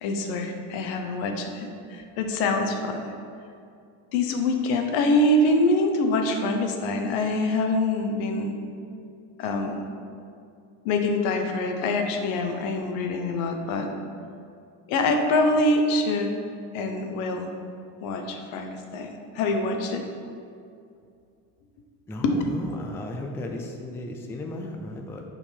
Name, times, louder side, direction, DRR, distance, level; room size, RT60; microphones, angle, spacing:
voice 1, 0.0-3.0 4.1-8.6 9.4-9.7 10.8-13.9 14.9-16.3 16.7-17.5 18.0-20.0 22.2-22.3, left 2 dB, 90° left, 4 dB, 1.0 m, -25 dB
voice 2, 22.1-25.2, left 2 dB, 5° left, 2 dB, 0.3 m, -35 dB
7.0 x 4.4 x 5.8 m, 2.4 s
cardioid pair, 145°, 40 cm